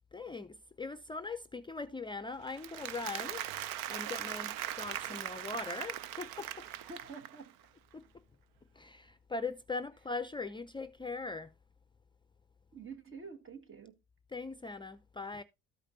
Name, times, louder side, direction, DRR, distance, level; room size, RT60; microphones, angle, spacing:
voice 1, 0.1-6.7 7.9-8.2 8.7-11.5 14.3-15.4, left 3 dB, 15° left, 0.5 m, -41 dB
Applause, 2.5-7.5, right 12 dB, 85° right, 0.7 m, -40 dB
voice 2, 6.8-7.6 12.7-14.0, right 4 dB, 40° right, 1.9 m, -48 dB
13.5 x 5.0 x 2.8 m
supercardioid pair, 70°, 32 cm